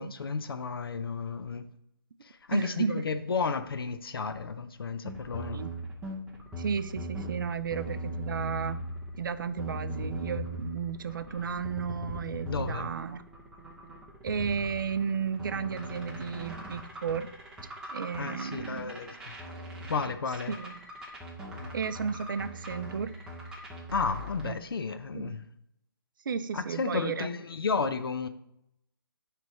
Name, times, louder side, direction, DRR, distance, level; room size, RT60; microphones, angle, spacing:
voice 1, 0.0-1.7 2.2-5.7 12.5-12.9 18.2-19.3 19.9-20.6 23.9-25.4 26.5-28.3, left 5 dB, 80° left, 10 dB, 0.6 m, -33 dB
voice 2, 2.5-3.1 5.5-5.7 6.6-8.8 9.2-13.2 14.2-17.3 17.9-19.0 20.5-20.8 21.7-23.2 24.4-24.6 25.1-25.4 26.3-27.3, right 6 dB, 60° right, 12 dB, 0.5 m, -33 dB
sound 1, 5.0-24.4, equal, 5° right, 0.7 m, -40 dB
9.1 x 3.4 x 3.1 m, 0.81 s
hypercardioid pair, 155°, 12 cm